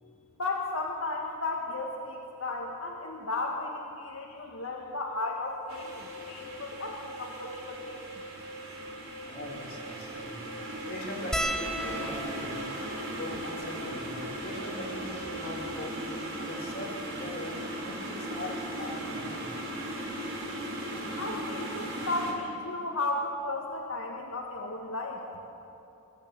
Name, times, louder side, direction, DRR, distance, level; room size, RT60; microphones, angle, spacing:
voice 1, 0.0-8.2 21.2-25.2, left 2 dB, 80° left, 0 dB, 1.8 m, -34 dB
sound 1, 5.4-15.8, equal, 50° right, 2.0 m, -46 dB
sound 2, 5.7-22.3, right 1 dB, 75° right, 4.3 m, -38 dB
voice 2, 9.2-10.5 10.9-12.8 13.1-16.0 16.4-19.4, left 1 dB, 45° left, -3 dB, 3.7 m, -41 dB
sound 3, 11.3-15.9 16.7-16.8 17.0-17.2 18.4-18.6 20.1-20.2 20.4-20.6, equal, ahead, 0.9 m, -38 dB
23.0 x 13.5 x 8.9 m, 2.8 s
head